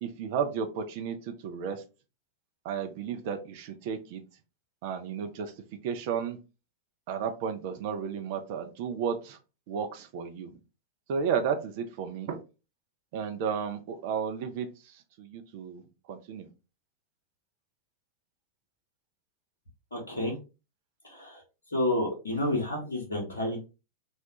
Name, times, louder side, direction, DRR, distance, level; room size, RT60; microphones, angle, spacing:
voice 1, 0.0-1.8 2.6-4.2 4.8-5.5 5.8-6.4 7.1-9.4 9.7-10.6 11.1-12.4 13.1-15.8 16.1-16.5, right 7 dB, 50° right, 7 dB, 0.4 m, -33 dB
voice 2, 19.9-20.4 21.2-21.3 21.7-23.7, left 1 dB, 75° left, 0 dB, 0.7 m, -29 dB
2.3 x 2.1 x 2.8 m, 0.30 s
figure-of-eight pair, 90°, 0 cm